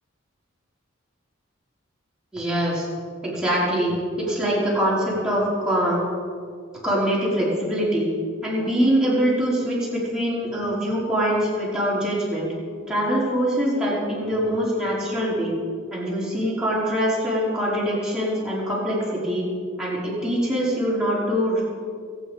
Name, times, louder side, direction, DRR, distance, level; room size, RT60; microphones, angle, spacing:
voice 1, 2.3-2.9 3.2-6.0 6.8-8.1 8.4-12.5 12.9-15.5 15.9-19.4 19.8-21.6, equal, 5° right, -7 dB, 5.0 m, -23 dB
24.0 x 9.3 x 5.4 m, 2.2 s
head